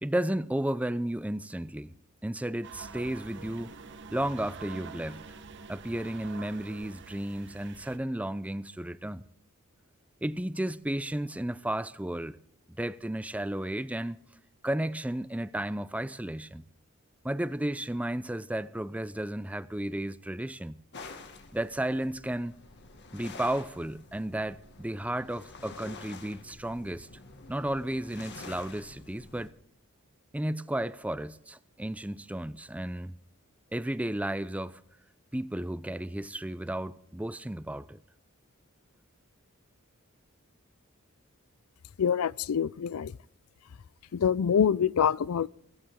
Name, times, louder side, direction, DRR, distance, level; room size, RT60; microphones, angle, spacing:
voice 1, 0.0-1.9 2.2-3.8 4.1-5.2 5.7-9.2 10.2-12.4 12.8-14.2 14.6-16.6 17.2-20.8 21.5-22.5 23.1-27.1 27.5-29.6 30.3-33.1 33.7-34.8 35.3-38.0, right 1 dB, 5° right, 0.5 m, -33 dB
sound 1, 2.6-8.0, right 4 dB, 60° right, 1.1 m, -46 dB
sound 2, 20.9-29.5, left 3 dB, 55° left, 2.0 m, -48 dB
voice 2, 42.0-43.1 44.1-45.5, left 7 dB, 85° left, 0.4 m, -25 dB
17.0 x 16.0 x 3.7 m
head